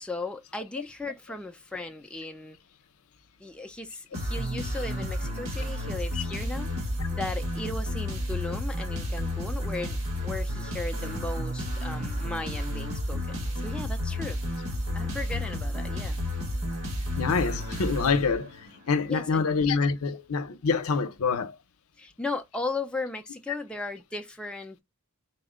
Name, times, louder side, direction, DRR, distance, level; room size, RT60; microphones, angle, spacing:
voice 1, 0.0-2.6 3.4-10.0 10.2-14.4 14.9-16.2 19.1-19.5 22.0-24.8, left 2 dB, 5° left, 0.3 m, -36 dB
sound 1, 4.1-18.7, left 1 dB, 65° right, 1.6 m, -31 dB
voice 2, 17.2-21.6, left 5 dB, 75° left, 0.6 m, -26 dB
4.2 x 2.1 x 3.6 m
head